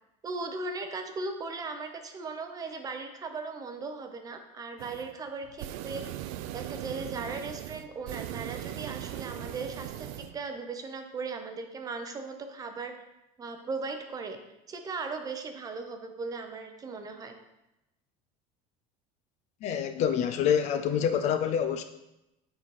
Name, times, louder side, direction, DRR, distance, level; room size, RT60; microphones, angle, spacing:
voice 1, 0.2-6.0 6.5-12.9 13.4-14.4 14.7-17.3, right 4 dB, 20° right, 6 dB, 0.6 m, -37 dB
sound 1, 4.8-5.1 5.4-10.4, right 13 dB, 75° right, 0.4 m, -39 dB
voice 2, 19.6-21.8, left 8 dB, 40° left, 8 dB, 0.4 m, -26 dB
7.6 x 4.0 x 4.8 m, 0.91 s
cardioid pair, 165°, 18 cm